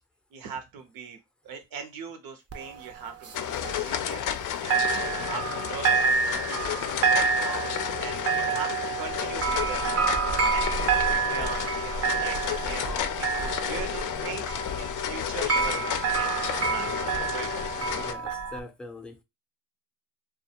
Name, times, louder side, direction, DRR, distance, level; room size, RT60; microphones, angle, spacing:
voice 1, 0.3-1.2 1.4-4.3 4.6-7.0 7.3-10.1 10.5-10.7 11.2-17.6, right 6 dB, 75° right, 0.8 m, -40 dB
sound 1, 2.5-4.4 4.7-18.6, right 5 dB, 45° right, 0.5 m, -28 dB
sound 2, 3.3-18.1, left 10 dB, 60° left, 0.4 m, -32 dB
voice 2, 17.8-19.2, left 1 dB, 5° left, 0.5 m, -43 dB
2.5 x 2.3 x 2.8 m
cardioid pair, 80°, 35 cm